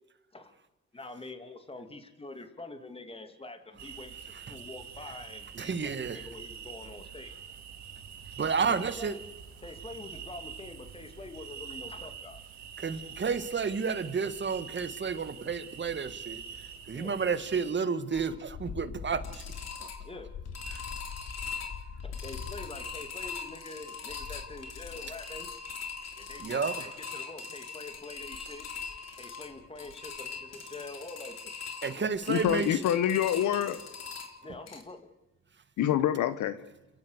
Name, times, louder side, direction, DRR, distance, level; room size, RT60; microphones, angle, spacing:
voice 1, 0.9-7.3 8.7-9.2 9.6-12.4 16.9-17.2 20.0-20.3 22.0-25.5 26.2-28.7 29.2-31.5 31.8-32.1 34.4-35.0, left 2 dB, 20° left, 7 dB, 2.6 m, -45 dB
sound 1, 3.8-17.7, right 7 dB, 65° right, 2.9 m, -45 dB
voice 2, 5.5-6.2 8.4-9.1 12.8-16.4 16.9-19.4 26.4-26.9 31.8-32.8, right 5 dB, 40° right, 11 dB, 1.8 m, -31 dB
sound 2, 18.1-34.8, left 5 dB, 60° left, 3.5 m, -41 dB
voice 3, 32.3-33.8 35.8-36.6, left 10 dB, 80° left, 13 dB, 1.1 m, -26 dB
30.0 x 12.5 x 8.2 m, 1.0 s
cardioid pair, 90°, 30 cm